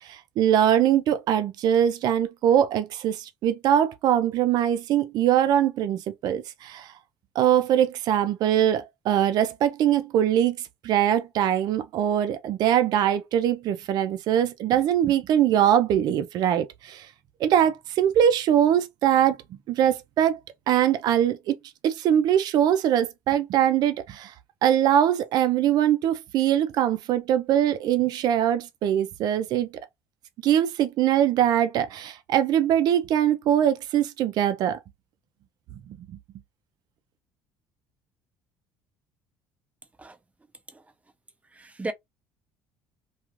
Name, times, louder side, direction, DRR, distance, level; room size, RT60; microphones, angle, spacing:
voice 1, 0.0-6.9 7.4-10.6 10.8-17.1 17.4-19.4 19.7-20.4 20.7-21.6 21.8-24.3 24.6-29.7 30.4-34.8, right 10 dB, 60° right, 0.5 m, -22 dB
voice 2, 41.5-41.9, right 2 dB, 15° right, 0.6 m, -35 dB
2.4 x 2.4 x 3.0 m
hypercardioid pair, 70°, 8 cm